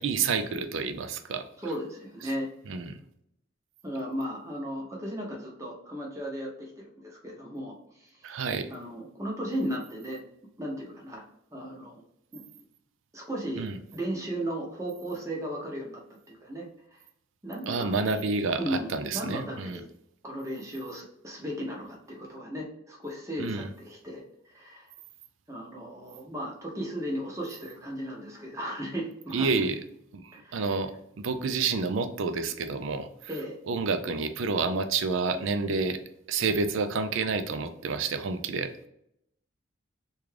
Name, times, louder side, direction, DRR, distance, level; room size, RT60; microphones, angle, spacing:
voice 1, 0.0-1.5 2.7-3.0 8.2-8.7 13.6-13.8 17.7-19.8 23.4-23.7 29.3-29.8 30.1-30.9 31.2-33.1 33.7-36.0 36.3-38.7, right 4 dB, 70° right, 9 dB, 0.4 m, -29 dB
voice 2, 1.6-2.5 3.8-8.4 8.7-10.2 10.6-11.2 11.5-12.0 12.3-12.4 13.1-13.7 13.9-16.0 16.3-17.0 17.4-18.2 18.6-19.9 20.2-24.9 25.5-29.5 30.3-30.7 33.3-33.6, equal, 15° right, -1 dB, 0.7 m, -36 dB
3.6 x 2.3 x 3.2 m, 0.76 s
head